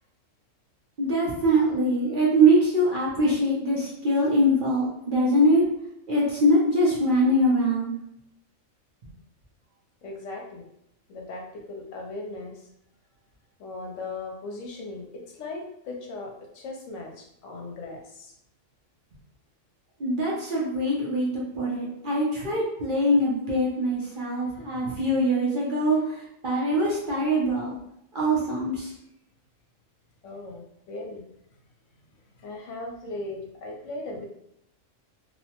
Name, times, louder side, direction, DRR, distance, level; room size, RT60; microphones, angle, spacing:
voice 1, 1.0-5.6 6.1-7.9 20.0-26.0 26.4-27.8 28.1-28.9, right 1 dB, 50° right, -5 dB, 0.7 m, -23 dB
voice 2, 10.0-10.7 11.1-12.6 13.6-18.3 24.3-24.8 30.2-31.2 32.4-34.3, left 2 dB, 70° left, 0 dB, 0.9 m, -38 dB
2.8 x 2.1 x 2.8 m, 0.77 s
omnidirectional pair, 1.4 m